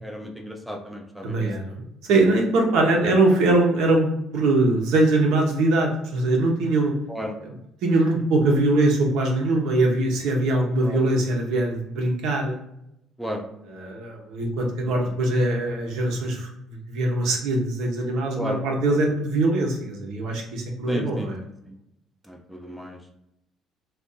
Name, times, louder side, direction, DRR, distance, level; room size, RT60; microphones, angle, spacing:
voice 1, 0.0-1.5 3.0-3.1 7.1-7.3 10.8-11.0 13.2-13.4 18.4-18.6 20.9-21.3 21.6-21.7 22.3-23.0, equal, ahead, 2 dB, 0.4 m, -33 dB
voice 2, 1.2-6.9 7.4-7.5 7.8-12.5 13.6-21.4, right 2 dB, 80° right, 0 dB, 0.9 m, -22 dB
2.7 x 2.5 x 3.6 m, 0.81 s
cardioid pair, 120°, 0 cm